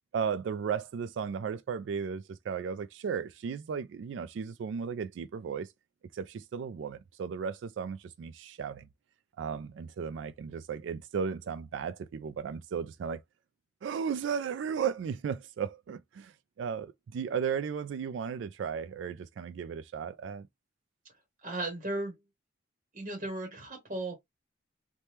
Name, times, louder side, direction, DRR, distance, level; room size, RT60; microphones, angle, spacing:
voice 1, 0.1-5.7 6.1-8.9 9.4-13.2 13.8-20.5, right 6 dB, 90° right, 0.3 m, -35 dB
voice 2, 21.4-22.2 22.9-24.2, right 2 dB, 40° right, 0.9 m, -36 dB
3.3 x 2.2 x 2.8 m
head